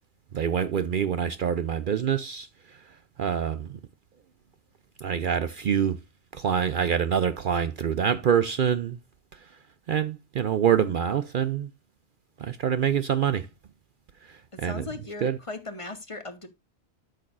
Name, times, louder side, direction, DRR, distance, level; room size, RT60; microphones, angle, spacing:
voice 1, 0.3-2.5 3.2-3.8 5.0-6.0 6.3-9.0 9.9-11.7 12.4-13.5 14.3-14.8 15.2-15.4, right 8 dB, 55° right, 0.6 m, -25 dB
voice 2, 14.6-16.5, left 3 dB, 30° left, 1.0 m, -37 dB
12.5 x 6.5 x 2.5 m
omnidirectional pair, 1.2 m